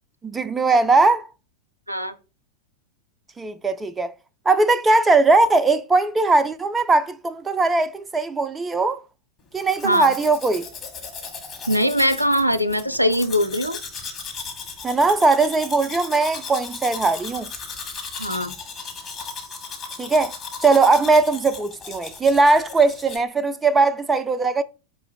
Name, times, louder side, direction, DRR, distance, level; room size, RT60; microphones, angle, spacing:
voice 1, 0.2-1.3 3.4-4.1 4.5-9.0 9.5-10.7 14.8-17.5 20.0-20.3 20.6-24.6, right 3 dB, 15° right, 0.4 m, -19 dB
Domestic sounds home sounds, 9.6-23.2, left 5 dB, 25° left, 1.3 m, -36 dB
voice 2, 9.8-10.1 11.7-13.8 18.2-18.5, equal, 90° right, 0.4 m, -21 dB
5.0 x 2.5 x 4.0 m
figure-of-eight pair, 90°, 0 cm